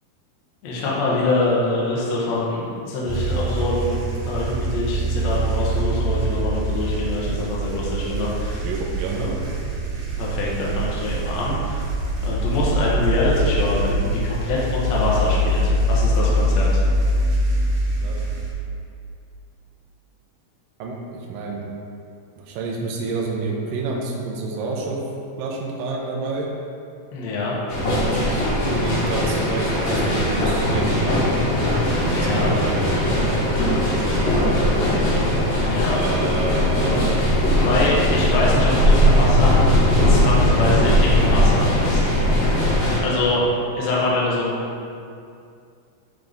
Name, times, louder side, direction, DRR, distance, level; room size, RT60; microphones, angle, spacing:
voice 1, 0.6-4.0 4.3-8.6 10.2-11.9 12.2-16.7 27.1-27.5 32.0-32.5 35.5-36.0 37.5-39.7 40.1-42.0 43.0-43.4 43.7-44.6, left 2 dB, 80° left, -5 dB, 1.5 m, -24 dB
sound 1, 3.1-18.5, right 1 dB, 65° right, 2.4 m, -23 dB
voice 2, 8.6-9.3 18.0-18.3 20.8-21.7 22.4-25.0 25.4-26.5 27.9-31.3 32.1-34.7 35.9-37.2, right 3 dB, 90° right, -2 dB, 2.0 m, -29 dB
sound 2, 27.7-43.0, equal, 60° left, 2.2 m, -19 dB
10.0 x 3.9 x 3.5 m, 2.4 s
omnidirectional pair, 5.0 m